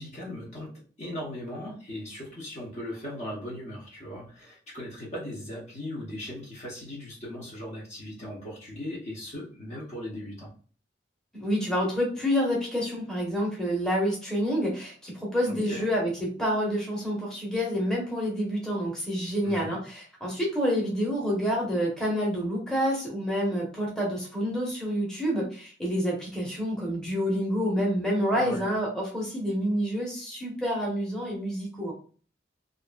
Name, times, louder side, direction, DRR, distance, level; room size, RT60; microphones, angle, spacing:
voice 1, 0.0-10.5 15.5-15.9 19.4-19.8 28.3-28.6, left 1 dB, 35° left, -4 dB, 0.8 m, -38 dB
voice 2, 11.3-16.1 16.4-31.9, equal, 5° left, -4 dB, 1.0 m, -28 dB
2.9 x 2.5 x 2.2 m, 0.40 s
head